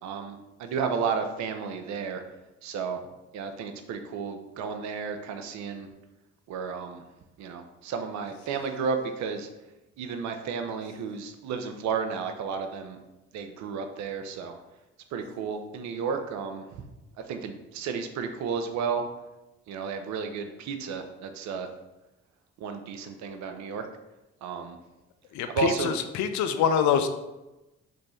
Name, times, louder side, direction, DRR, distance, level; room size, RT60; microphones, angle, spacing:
voice 1, 0.0-2.2 2.6-3.0 3.3-5.9 6.5-7.0 7.4-9.5 10.0-13.0 13.3-14.6 15.1-16.8 17.3-19.0 19.7-21.7 22.6-23.9 24.4-24.8 25.5-25.9, right 5 dB, 65° right, 7 dB, 0.6 m, -32 dB
voice 2, 25.3-27.1, left 7 dB, 70° left, 9 dB, 0.4 m, -25 dB
3.1 x 2.6 x 4.1 m, 1.0 s
hypercardioid pair, 50°, 30 cm